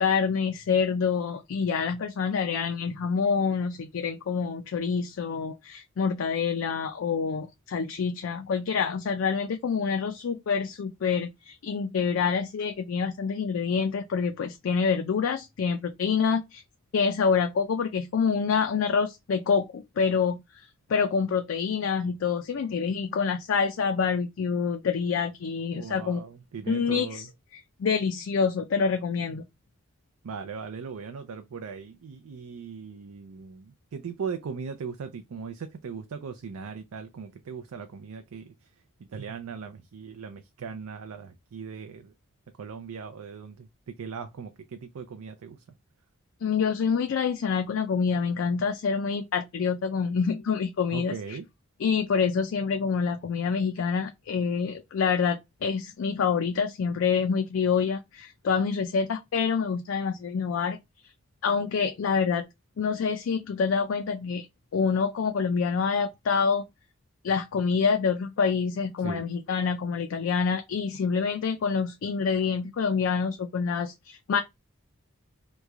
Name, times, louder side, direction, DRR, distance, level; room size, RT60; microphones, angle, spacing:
voice 1, 0.0-16.6 16.9-26.2 26.7-27.2 27.5-29.4 46.4-51.4 51.8-60.8 61.4-62.5 62.8-64.5 64.7-66.6 67.2-74.4, left 6 dB, 65° left, 0.4 m, -27 dB
voice 2, 25.7-27.3 30.2-38.7 39.1-42.1 42.6-45.6 50.9-51.5 69.0-69.2, right 6 dB, 90° right, 0.4 m, -39 dB
3.0 x 2.2 x 3.6 m
head